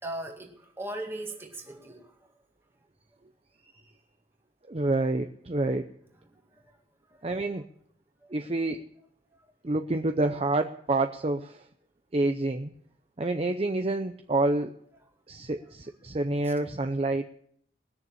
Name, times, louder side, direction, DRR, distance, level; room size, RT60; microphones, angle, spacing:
voice 1, 0.0-2.1 6.3-6.6 8.2-8.3 16.4-16.5, right 1 dB, 15° right, 2 dB, 2.1 m, -39 dB
voice 2, 4.7-5.9 7.2-7.7 8.3-8.9 9.6-11.7 12.1-12.7 13.2-14.7 15.3-17.2, right 2 dB, 35° right, 7 dB, 0.6 m, -28 dB
20.0 x 6.8 x 8.5 m, 0.67 s
head